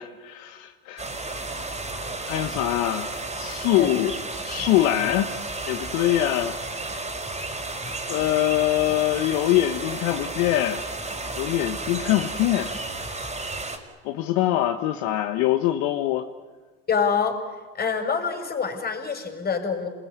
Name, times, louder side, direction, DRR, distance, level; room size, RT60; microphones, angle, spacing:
voice 1, 0.0-1.4 1.9-5.3 5.6-6.5 8.1-10.8 11.4-12.8 14.0-16.2, left 13 dB, 65° left, 6 dB, 1.6 m, -24 dB
sound 1, 1.0-13.8, right 2 dB, 20° right, 5.5 m, -33 dB
voice 2, 16.9-17.4 17.8-19.9, left 6 dB, 30° left, 5 dB, 6.3 m, -25 dB
28.5 x 21.0 x 9.7 m, 1.4 s
supercardioid pair, 90°, 31 cm